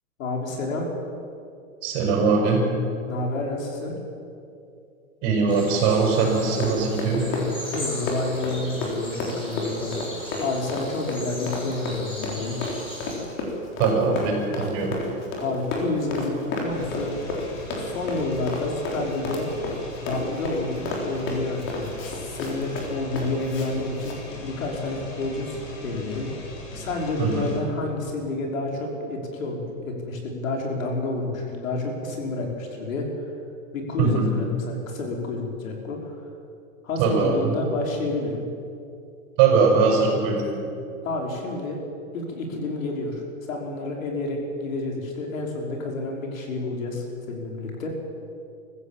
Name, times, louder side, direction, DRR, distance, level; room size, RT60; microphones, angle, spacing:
voice 1, 0.2-0.9 3.1-3.9 7.7-10.0 10.4-12.6 15.4-17.1 17.8-19.5 20.0-24.2 24.4-26.3 26.7-33.0 33.7-36.1 36.8-38.4 41.0-41.8 42.1-43.2 43.5-47.9, left 2 dB, 70° left, 1 dB, 5.4 m, -29 dB
voice 2, 1.8-2.6 5.2-7.3 13.8-15.0 27.2-27.5 34.0-34.3 37.0-37.5 39.4-40.4, right 5 dB, 35° right, 1 dB, 6.2 m, -21 dB
sound 1, 5.5-13.2, equal, 10° left, 6.3 m, -39 dB
Run, 6.3-23.7 24.0-24.2, left 2 dB, 30° left, 4.0 m, -32 dB
sound 2, 16.7-27.6, left 3 dB, 45° left, 7.3 m, -40 dB
24.5 x 15.0 x 7.6 m, 2.6 s
hypercardioid pair, 150°, 41 cm